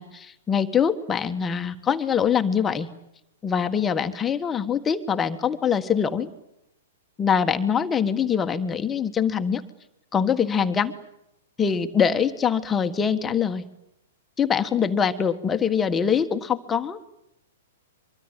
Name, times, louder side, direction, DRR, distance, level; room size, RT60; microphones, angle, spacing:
voice 1, 0.0-2.9 3.4-6.3 7.2-9.6 10.1-10.9 11.6-13.6 14.4-17.1, left 7 dB, 15° left, 7 dB, 1.6 m, -23 dB
24.5 x 24.0 x 9.3 m, 0.84 s
figure-of-eight pair, 110°, 0 cm